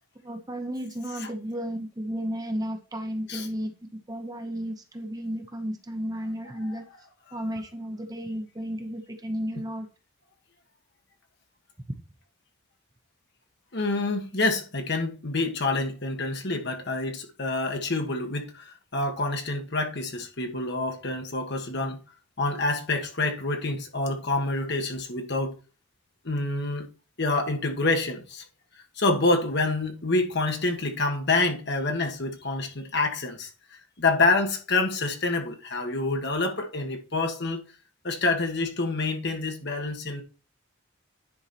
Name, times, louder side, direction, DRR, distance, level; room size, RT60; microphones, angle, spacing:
voice 1, 0.2-3.7 4.1-6.8 7.3-9.9, equal, 15° right, 0.8 m, -33 dB
voice 2, 13.7-22.0 22.4-25.5 26.2-26.9 27.2-28.4 29.0-33.5 34.0-37.6 38.0-40.2, left 2 dB, 50° left, 1.5 m, -27 dB
10.0 x 4.7 x 4.3 m
head